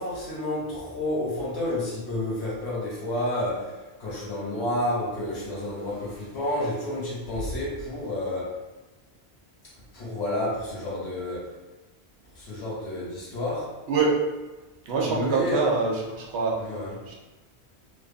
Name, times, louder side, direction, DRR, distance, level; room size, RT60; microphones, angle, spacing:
voice 1, 0.0-8.6 9.9-11.5 12.3-13.7 15.1-15.7 16.6-17.0, left 1 dB, 75° left, -6 dB, 1.3 m, -30 dB
voice 2, 14.9-16.5 17.1-17.2, right 4 dB, 80° right, -2 dB, 0.9 m, -24 dB
2.9 x 2.2 x 2.4 m, 1.2 s
omnidirectional pair, 1.1 m